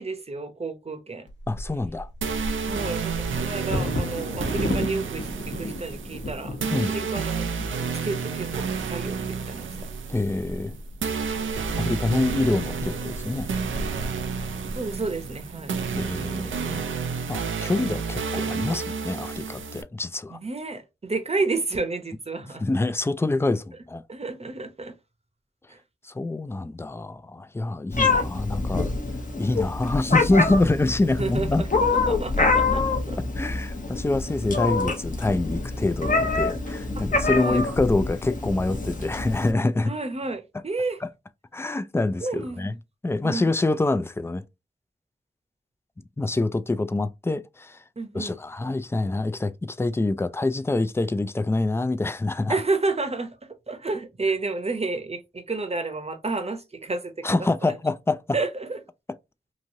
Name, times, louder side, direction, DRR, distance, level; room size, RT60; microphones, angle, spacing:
voice 1, 0.0-1.3 2.7-7.5 8.0-9.9 14.7-15.7 20.3-22.6 24.1-24.9 25.7-25.8 28.1-28.3 31.2-31.7 32.1-33.2 37.0-37.1 37.4-37.6 39.8-41.0 42.2-42.8 43.2-43.4 48.0-48.4 52.5-53.4 53.7-57.8 58.3-58.8, right 3 dB, 30° right, 0.8 m, -31 dB
Bird vocalization bird call bird song / Wind / Thunder, 1.3-17.2 17.8-17.9 18.2-18.6 19.1-19.6, left 1 dB, 65° left, 1.0 m, -36 dB
voice 2, 1.5-2.1 6.7-7.0 10.1-10.7 11.8-13.5 15.9-16.9 17.3-20.4 22.6-24.0 26.0-28.9 29.3-31.6 33.4-39.9 41.0-41.1 41.5-42.7 43.0-44.4 46.2-47.8 48.1-52.6 57.2-58.2, left 2 dB, 10° left, 0.3 m, -26 dB
sound 1, 2.2-19.8, right 5 dB, 80° right, 0.5 m, -30 dB
Meow, 27.9-39.5, left 3 dB, 40° left, 0.9 m, -26 dB
3.0 x 2.6 x 2.7 m
cardioid pair, 40°, 20 cm